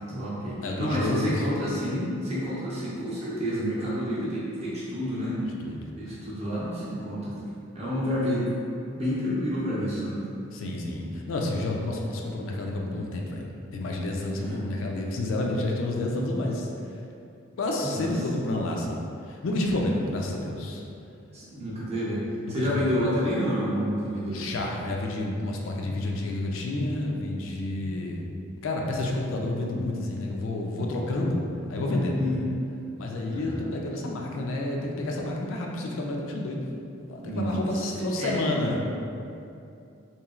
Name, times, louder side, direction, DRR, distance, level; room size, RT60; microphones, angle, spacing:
voice 1, 0.1-5.4 6.0-7.3 7.7-8.5 9.0-10.3 11.8-12.0 14.4-14.6 17.8-18.1 21.3-22.2 22.5-24.5 32.2-32.4 33.3-33.7 37.2-37.8 38.2-38.4, equal, 30° right, -8 dB, 0.6 m, -29 dB
voice 2, 0.6-1.5 5.6-6.2 10.5-16.7 17.6-20.8 22.5-23.0 24.3-28.2 28.6-32.2 33.0-36.6 37.0-38.8, left 2 dB, 70° left, 0 dB, 0.4 m, -30 dB
3.0 x 2.7 x 2.3 m, 2.6 s
head